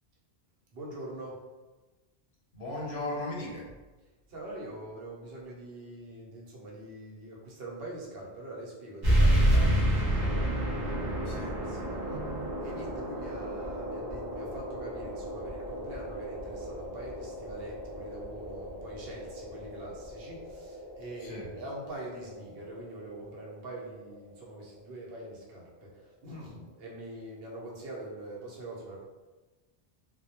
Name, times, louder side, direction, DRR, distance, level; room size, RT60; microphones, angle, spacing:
voice 1, 0.7-1.4 4.3-10.5 10.8-12.2 12.6-29.0, right 1 dB, 70° right, -3 dB, 0.8 m, -43 dB
voice 2, 2.5-3.7 11.3-11.5 12.1-12.5 21.2-21.5, left 1 dB, 90° left, -3 dB, 1.0 m, -37 dB
sound 1, 9.0-24.1, equal, 35° right, 0.3 m, -31 dB
2.2 x 2.0 x 2.8 m, 1.2 s
omnidirectional pair, 1.1 m